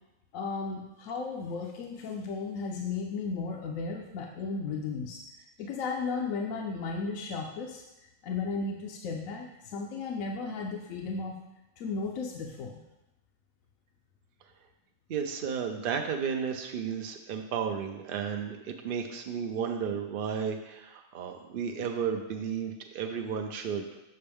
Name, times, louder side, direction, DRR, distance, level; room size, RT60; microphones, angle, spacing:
voice 1, 0.3-5.2 5.6-7.8 8.2-11.3 11.8-12.8, left 4 dB, 75° left, 1 dB, 1.0 m, -34 dB
voice 2, 15.1-23.9, right 7 dB, 65° right, 4 dB, 0.5 m, -33 dB
6.8 x 5.4 x 3.4 m, 0.96 s
omnidirectional pair, 1.5 m